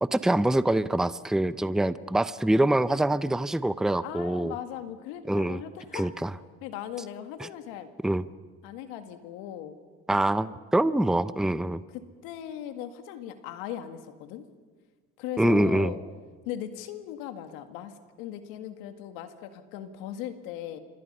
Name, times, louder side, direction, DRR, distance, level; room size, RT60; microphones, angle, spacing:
voice 1, 0.0-4.5 5.3-5.6 5.9-6.3 7.4-7.5 8.0-8.2 10.1-11.8 15.4-15.9, right 1 dB, ahead, 14 dB, 0.7 m, -25 dB
voice 2, 4.0-6.1 6.6-7.9 8.6-9.8 11.9-14.5 15.2-16.0 16.5-20.8, left 11 dB, 90° left, 8 dB, 2.0 m, -38 dB
27.0 x 24.0 x 5.6 m, 1.4 s
supercardioid pair, 85°, 33 cm